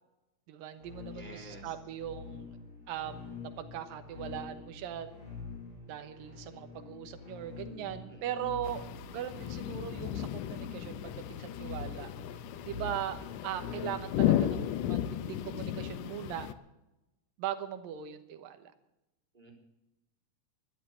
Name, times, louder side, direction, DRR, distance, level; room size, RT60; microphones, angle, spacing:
voice 1, 0.5-2.5 2.9-5.1 5.9-8.8 9.1-13.2 13.4-16.5 17.4-18.7, right 10 dB, 85° right, 9 dB, 2.9 m, -40 dB
sound 1, 0.8-15.6, left 5 dB, 50° left, 7.1 m, -46 dB
voice 2, 1.1-1.7 8.1-8.3 19.3-19.5, right 2 dB, 15° right, -3 dB, 3.9 m, -49 dB
sound 2, 8.6-16.5, left 12 dB, 80° left, 2.2 m, -34 dB
12.0 x 12.0 x 8.8 m, 0.93 s
omnidirectional pair, 3.9 m